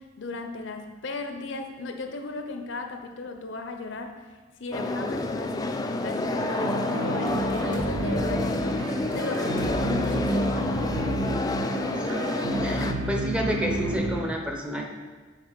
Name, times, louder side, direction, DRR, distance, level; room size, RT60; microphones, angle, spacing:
voice 1, 0.2-4.2 4.6-8.9 9.1-10.7, left 3 dB, 70° left, 6 dB, 0.6 m, -35 dB
sound 1, 4.7-12.9, left 2 dB, 20° left, 0.3 m, -29 dB
sound 2, 6.4-14.2, right 1 dB, 85° right, 0.7 m, -30 dB
sound 3, 7.3-7.9 8.2-8.5 9.1-9.8 10.0-10.4, equal, 45° right, 1.2 m, -40 dB
voice 2, 11.9-12.2 12.6-14.9, equal, 5° right, 1 dB, 0.7 m, -30 dB
6.6 x 4.1 x 5.1 m, 1.4 s
head